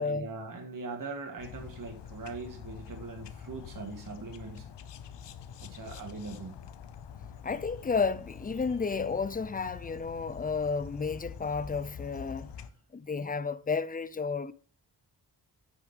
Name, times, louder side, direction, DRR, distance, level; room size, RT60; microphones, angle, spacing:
voice 1, 0.0-4.7 5.6-6.6, right 3 dB, 50° right, 1.9 m, -41 dB
sound 1, 1.4-12.7, left 7 dB, 80° left, 0.9 m, -46 dB
voice 2, 7.4-12.5 12.9-14.5, left 5 dB, 20° left, 0.7 m, -32 dB
9.1 x 6.2 x 5.5 m
cardioid pair, 55°, 42 cm